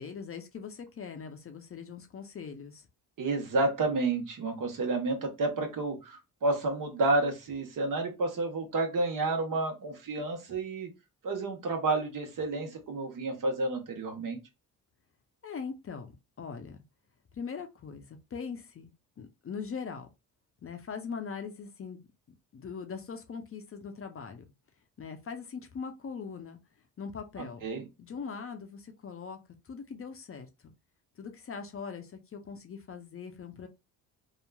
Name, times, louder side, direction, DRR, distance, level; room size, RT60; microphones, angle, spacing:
voice 1, 0.0-2.8 15.4-16.1 16.4-16.8 17.3-20.1 20.6-22.0 22.5-24.4 25.0-26.6 27.0-27.7 28.0-29.4 29.7-30.5 31.2-33.7, left 6 dB, 35° left, 0.6 m, -41 dB
voice 2, 3.2-10.9 11.2-14.4 27.6-27.9, right 2 dB, 55° right, 1.1 m, -30 dB
2.9 x 2.4 x 2.2 m
supercardioid pair, 70°, 39 cm